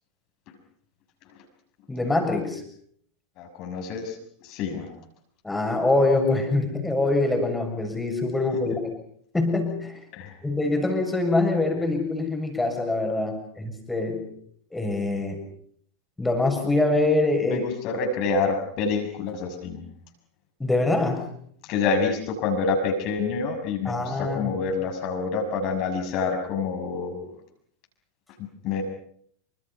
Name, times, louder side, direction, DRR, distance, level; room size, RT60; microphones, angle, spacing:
voice 1, 1.9-2.6 5.4-8.7 9.3-10.0 10.4-14.3 14.7-15.4 16.2-17.7 20.6-21.2 23.8-24.6, left 2 dB, 5° left, 4 dB, 7.0 m, -24 dB
voice 2, 3.4-4.9 10.1-10.3 17.4-19.8 21.7-27.3 28.4-28.8, left 4 dB, 40° left, 4 dB, 6.3 m, -27 dB
28.0 x 25.5 x 5.8 m, 0.66 s
figure-of-eight pair, 90°, 0 cm